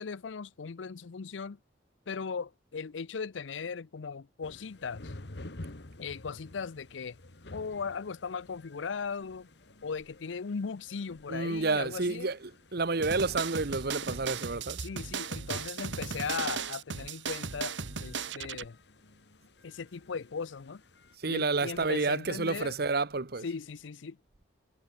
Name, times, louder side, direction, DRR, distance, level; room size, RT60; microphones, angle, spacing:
voice 1, 0.0-1.6 2.1-5.1 6.0-7.2 7.5-9.5 9.8-12.3 14.8-18.8 19.6-20.8 21.3-22.7 23.4-24.2, left 5 dB, 85° left, 0.6 m, -38 dB
sound 1, 4.4-21.2, left 2 dB, 65° left, 1.5 m, -52 dB
voice 2, 11.3-14.8 15.5-15.6 21.2-23.4, right 3 dB, 55° right, 1.1 m, -30 dB
sound 2, 13.0-18.7, right 6 dB, 75° right, 1.3 m, -36 dB
head